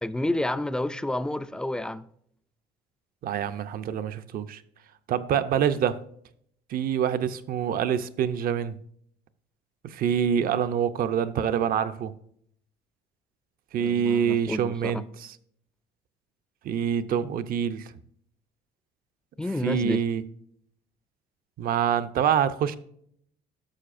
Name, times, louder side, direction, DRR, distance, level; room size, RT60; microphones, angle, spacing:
voice 1, 0.0-2.0 13.8-15.0 19.4-20.0, left 1 dB, 5° left, 0.3 m, -30 dB
voice 2, 3.2-4.6 5.1-6.0 6.7-8.8 9.8-12.1 13.7-15.3 16.6-17.9 19.6-20.2 21.6-22.8, right 8 dB, 60° right, 0.6 m, -26 dB
11.5 x 6.9 x 2.5 m
cardioid pair, 110°, 17 cm